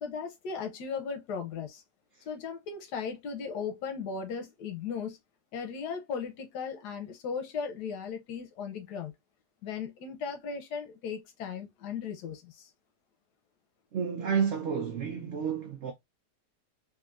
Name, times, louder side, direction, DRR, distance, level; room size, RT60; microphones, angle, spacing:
voice 1, 0.0-1.8 2.3-5.2 5.5-9.1 9.6-12.7, left 6 dB, 90° left, 1.3 m, -37 dB
voice 2, 13.9-15.9, right 7 dB, 60° right, 0.8 m, -30 dB
3.6 x 2.6 x 2.3 m
omnidirectional pair, 1.7 m